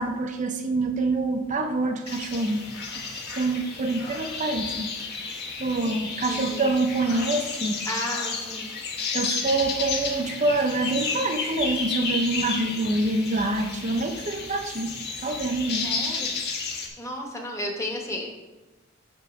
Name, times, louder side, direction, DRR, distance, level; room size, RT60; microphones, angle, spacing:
voice 1, 0.0-2.7 2.9-4.9 5.2-5.3 5.6-7.8 9.1-14.9 15.2-16.0, right 2 dB, 35° right, 5 dB, 0.5 m, -26 dB
sound 1, 2.1-16.9, left 4 dB, 50° left, 1.1 m, -32 dB
voice 2, 5.9-6.7 7.9-8.7 15.8-16.3 17.0-18.3, left 1 dB, 15° left, 1 dB, 1.0 m, -33 dB
8.2 x 3.0 x 5.8 m, 1.1 s
head